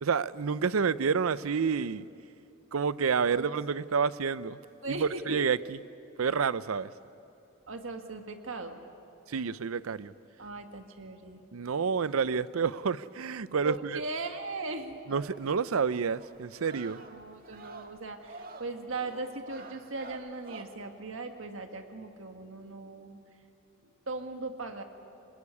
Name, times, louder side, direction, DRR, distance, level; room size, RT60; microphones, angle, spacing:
voice 1, 0.0-2.1 2.7-4.6 4.9-5.8 6.2-6.9 9.3-10.1 11.5-14.0 15.1-17.0, right 5 dB, 90° right, 0.6 m, -29 dB
voice 2, 4.8-5.4 7.7-8.8 10.4-11.4 13.6-15.0 17.1-23.2 23.8-24.8, right 3 dB, 70° right, 1.8 m, -38 dB
sound 1, 15.1-20.6, right 3 dB, 45° right, 1.5 m, -49 dB
22.5 x 20.5 x 9.8 m
head